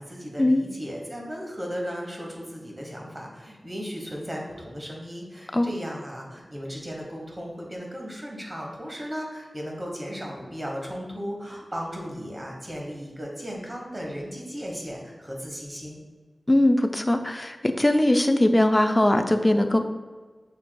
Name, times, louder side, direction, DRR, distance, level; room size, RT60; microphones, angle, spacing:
voice 1, 0.0-16.0, equal, 30° right, -1 dB, 1.3 m, -36 dB
voice 2, 16.5-19.8, left 1 dB, 20° left, 6 dB, 0.4 m, -20 dB
6.5 x 3.5 x 2.3 m, 1.4 s
cardioid pair, 50°, 0 cm